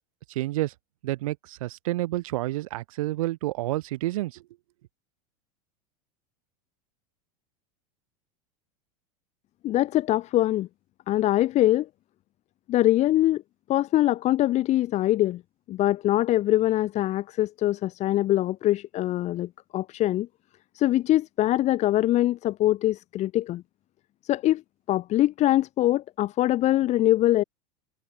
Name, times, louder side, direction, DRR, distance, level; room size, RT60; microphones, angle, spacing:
voice 1, 0.3-0.7 1.0-4.4, right 17 dB, 80° right, 3.1 m, -29 dB
voice 2, 9.6-10.7 11.1-11.9 12.7-13.4 13.7-15.4 15.7-20.3 20.7-23.6 24.2-24.6 24.9-27.4, left 14 dB, 40° left, 2.9 m, -23 dB
supercardioid pair, 125°, 18 cm